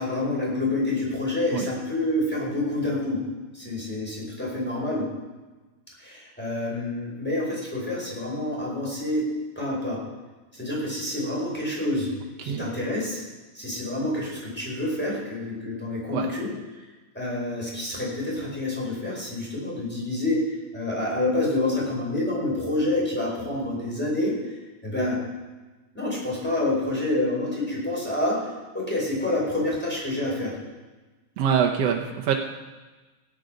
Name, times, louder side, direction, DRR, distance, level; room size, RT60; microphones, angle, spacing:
voice 1, 0.0-3.2 3.5-5.1 6.0-9.3 9.5-10.0 10.5-12.1 12.4-13.2 13.5-16.5 16.8-16.9 17.1-24.5 24.8-25.2 25.9-28.4 28.7-30.5, left 2 dB, 5° left, -4 dB, 4.7 m, -27 dB
voice 2, 31.4-32.4, right 8 dB, 65° right, 2 dB, 1.7 m, -24 dB
17.5 x 9.6 x 5.1 m, 1.2 s
omnidirectional pair, 3.4 m